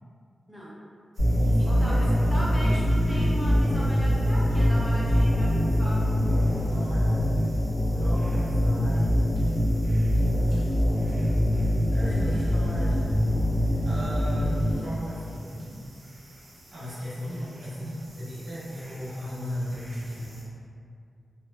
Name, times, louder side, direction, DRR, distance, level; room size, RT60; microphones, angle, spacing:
voice 1, 0.5-0.8 1.7-6.2, equal, 5° left, -7 dB, 0.5 m, -37 dB
sound 1, 1.1-20.4, equal, 45° right, 0.6 m, -45 dB
sound 2, 1.2-14.7, equal, 70° left, 1.2 m, -23 dB
voice 2, 1.4-2.6 6.6-7.3 7.9-9.2 11.9-13.2 13.8-15.9 16.7-20.4, equal, 85° right, -10 dB, 0.8 m, -36 dB
2.8 x 2.1 x 2.2 m, 2.4 s
wide cardioid pair, 125°, 0 cm